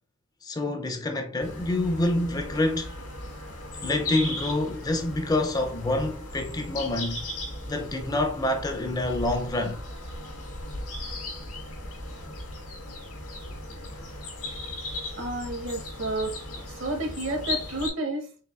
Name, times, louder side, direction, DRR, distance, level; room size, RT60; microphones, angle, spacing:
voice 1, 0.4-2.9 3.8-7.3 7.7-9.8, left 2 dB, 20° left, 0.4 m, -27 dB
sound 1, 1.4-17.9, left 2 dB, 85° left, 1.8 m, -37 dB
voice 2, 15.2-16.3 16.8-18.3, right 2 dB, 60° right, 1.0 m, -30 dB
4.7 x 3.7 x 2.3 m
head